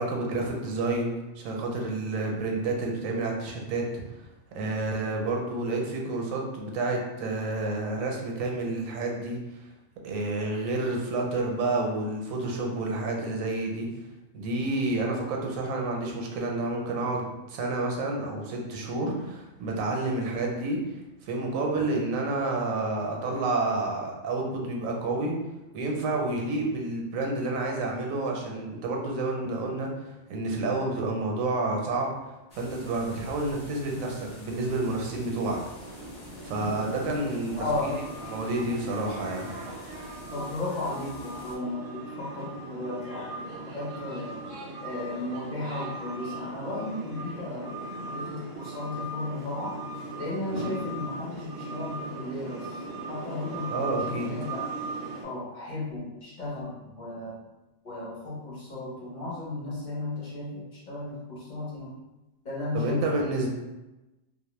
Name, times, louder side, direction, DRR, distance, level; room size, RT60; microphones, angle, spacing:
voice 1, 0.0-4.2 4.5-9.4 10.0-13.9 14.3-20.8 21.2-25.4 25.7-32.1 32.6-35.6 36.4-37.9 38.3-39.5 53.7-54.3 62.7-63.5, right 2 dB, 85° right, 0 dB, 1.0 m, -29 dB
sound 1, 32.5-41.5, left 1 dB, 75° left, 0.3 m, -48 dB
sound 2, 35.8-55.2, right 2 dB, 60° right, 0.6 m, -38 dB
voice 2, 37.6-38.0 40.3-44.4 44.8-47.7 48.1-49.8 50.2-54.6 55.2-57.4 57.8-61.9 62.4-63.0, left 2 dB, 45° left, -7 dB, 0.7 m, -35 dB
2.3 x 2.1 x 3.0 m, 1.0 s
omnidirectional pair, 1.4 m